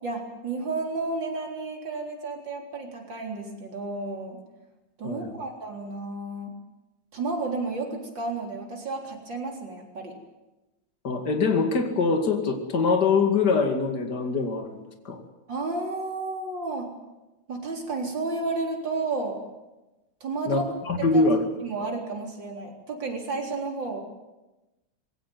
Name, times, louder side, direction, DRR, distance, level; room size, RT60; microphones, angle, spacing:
voice 1, 0.0-4.4 5.0-6.5 7.1-10.1 15.5-16.9 17.5-19.4 20.2-21.2 21.6-24.0, right 3 dB, 65° right, 1 dB, 4.5 m, -32 dB
voice 2, 11.0-14.8 15.0-15.2 20.5-21.4, left 4 dB, 55° left, 4 dB, 2.9 m, -23 dB
21.5 x 17.5 x 9.5 m, 1.1 s
omnidirectional pair, 2.2 m